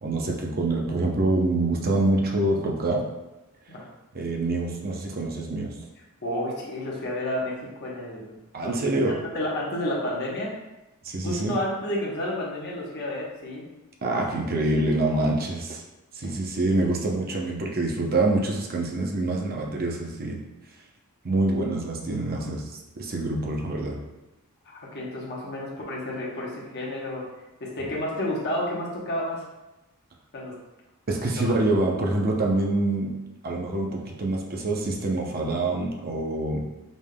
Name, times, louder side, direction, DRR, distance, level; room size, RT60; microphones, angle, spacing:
voice 1, 0.0-3.0 4.1-5.7 8.5-9.2 11.0-11.6 14.0-15.8 16.1-20.4 21.2-24.0 31.1-33.1 33.4-36.6, right 2 dB, 45° right, 0 dB, 0.6 m, -26 dB
voice 2, 6.2-9.0 9.3-10.5 11.2-13.7 16.2-16.3 24.7-27.2 27.6-29.4 30.3-30.6 31.5-31.6, left 1 dB, 50° left, -5 dB, 1.0 m, -31 dB
5.2 x 3.4 x 2.2 m, 1.0 s
head